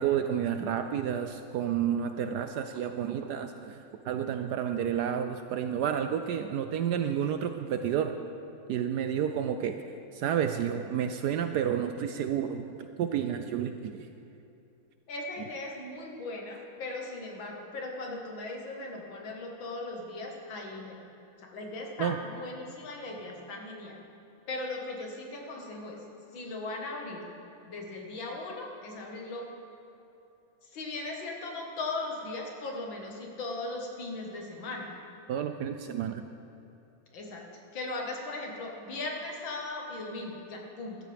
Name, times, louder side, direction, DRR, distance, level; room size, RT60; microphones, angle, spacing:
voice 1, 0.0-8.2 8.7-9.8 10.1-14.1 22.0-22.2 35.3-36.3, right 9 dB, 80° right, 7 dB, 0.9 m, -30 dB
voice 2, 15.1-21.0 21.4-24.0 24.5-26.0 26.3-27.2 27.7-29.5 30.6-34.9 37.1-37.4 37.7-41.0, left 2 dB, 70° left, 0 dB, 2.2 m, -38 dB
15.0 x 13.0 x 3.4 m, 2.8 s
omnidirectional pair, 2.3 m